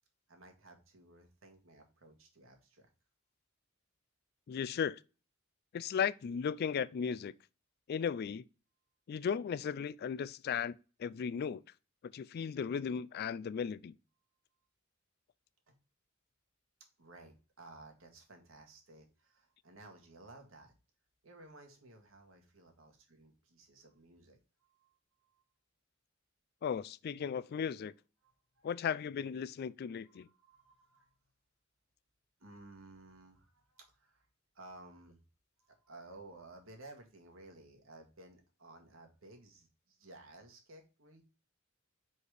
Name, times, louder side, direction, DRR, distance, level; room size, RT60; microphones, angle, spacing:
voice 1, 0.3-2.9 15.7-15.8 17.0-20.7 21.2-25.4 28.2-28.7 30.0-31.1 32.4-34.3 34.5-35.2 35.6-41.2, right 2 dB, 80° right, 1.7 m, -56 dB
voice 2, 4.5-5.0 5.7-7.3 7.9-8.4 9.1-11.6 12.0-13.9 26.6-27.9 28.6-30.3, left 7 dB, 50° left, 0.3 m, -36 dB
4.9 x 4.2 x 4.9 m
head